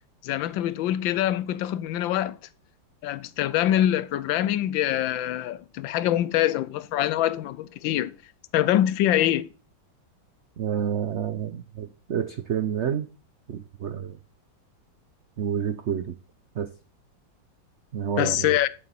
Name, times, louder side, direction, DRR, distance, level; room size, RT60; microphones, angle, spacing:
voice 1, 0.2-2.4 3.0-8.1 8.5-9.5 18.2-18.7, left 12 dB, 85° left, 1.4 m, -24 dB
voice 2, 10.6-13.1 13.5-14.2 15.4-16.1 16.5-16.7 17.9-18.6, right 8 dB, 80° right, 0.6 m, -29 dB
11.0 x 7.4 x 4.2 m
omnidirectional pair, 2.1 m